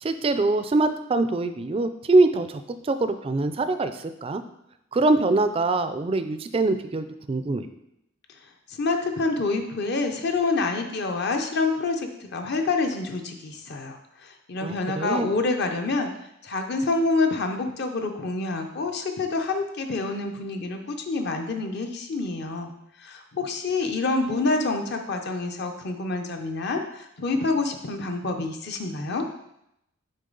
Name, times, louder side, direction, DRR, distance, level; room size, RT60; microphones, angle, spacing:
voice 1, 0.0-4.4 4.9-7.7 14.6-15.3, right 2 dB, 25° right, 10 dB, 0.3 m, -23 dB
voice 2, 8.3-16.1 16.4-22.7 23.0-29.2, left 3 dB, 55° left, 4 dB, 0.6 m, -27 dB
6.5 x 4.5 x 3.9 m, 0.81 s
head